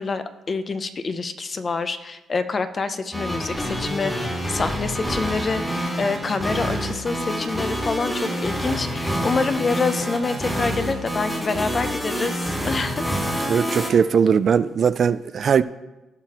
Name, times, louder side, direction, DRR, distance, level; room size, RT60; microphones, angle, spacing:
voice 1, 0.0-13.0, left 4 dB, 35° left, 0.7 m, -26 dB
sound 1, 3.1-13.9, equal, 10° left, 2.0 m, -27 dB
voice 2, 13.5-15.6, right 7 dB, 50° right, 0.3 m, -19 dB
17.0 x 5.8 x 3.0 m
cardioid pair, 90°, 0 cm